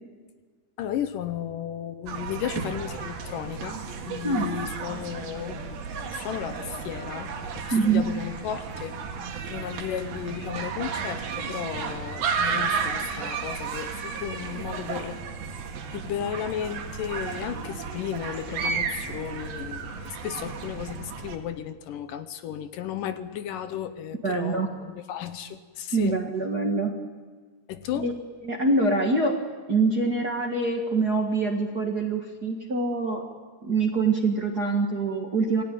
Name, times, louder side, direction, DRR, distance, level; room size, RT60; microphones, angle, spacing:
voice 1, 0.8-9.0 9.5-15.2 15.9-26.2 27.7-28.1, left 10 dB, 70° left, 10 dB, 2.4 m, -34 dB
sound 1, 2.1-21.4, right 5 dB, 85° right, 4.0 m, -33 dB
voice 2, 7.7-8.0 24.2-24.7 25.9-26.9 27.9-28.1 28.4-29.4 29.7-33.2 33.6-35.6, right 3 dB, 40° right, 1 dB, 1.6 m, -24 dB
27.5 x 19.0 x 9.2 m, 1.5 s
omnidirectional pair, 4.2 m